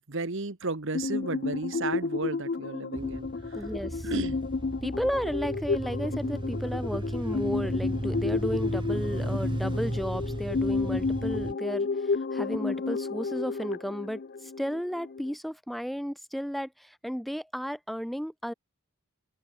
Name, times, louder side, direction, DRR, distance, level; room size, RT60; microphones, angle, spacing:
voice 1, 0.1-3.7 4.0-4.4, right 3 dB, 60° right, 1.3 m, -34 dB
sound 1, 0.9-15.3, left 4 dB, 45° left, 0.5 m, -32 dB
sound 2, 3.0-11.5, right 1 dB, 20° right, 1.1 m, -35 dB
voice 2, 3.5-4.1 4.8-18.5, equal, ahead, 0.8 m, -33 dB
open air
head